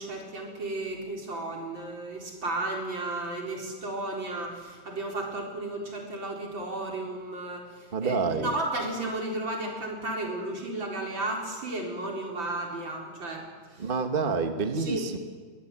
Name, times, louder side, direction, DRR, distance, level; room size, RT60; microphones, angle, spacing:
voice 1, 0.0-13.9 14.7-15.0, right 2 dB, 65° right, 0 dB, 4.9 m, -34 dB
voice 2, 7.9-8.5 13.8-15.2, right 4 dB, 30° right, 7 dB, 1.2 m, -28 dB
22.0 x 19.5 x 8.8 m, 1.5 s
omnidirectional pair, 2.2 m